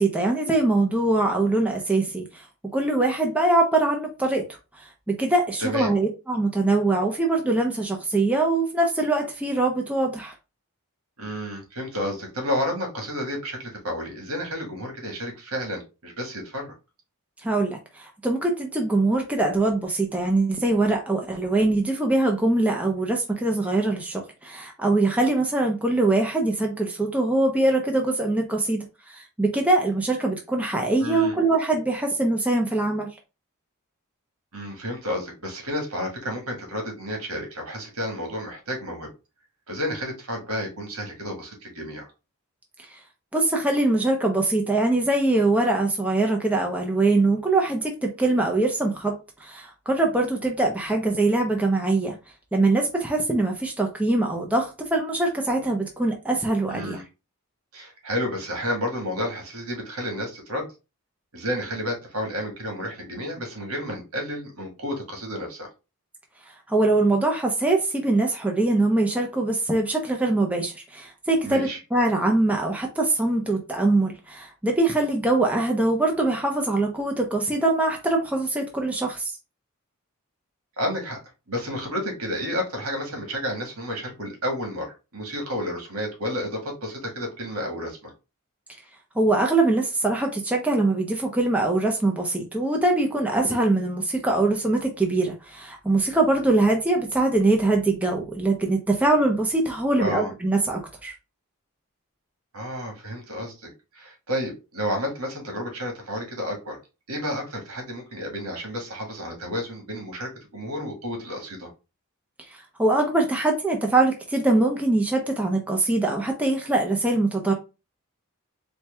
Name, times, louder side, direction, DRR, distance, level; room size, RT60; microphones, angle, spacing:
voice 1, 0.0-2.5 2.7-4.4 4.8-10.3 17.4-33.1 42.9-43.0 43.3-52.2 52.5-57.0 66.7-79.3 89.2-101.1 112.5-117.5, right 2 dB, 5° right, 0.5 m, -23 dB
voice 2, 5.6-5.9 11.2-16.7 31.0-31.3 34.5-39.1 39.7-42.1 56.7-57.0 57.7-60.7 61.3-65.7 71.4-71.8 80.8-81.2 81.5-88.1 100.0-100.3 102.5-106.8 107.1-111.7, equal, 75° right, 1.6 m, -31 dB
4.3 x 2.2 x 3.3 m
head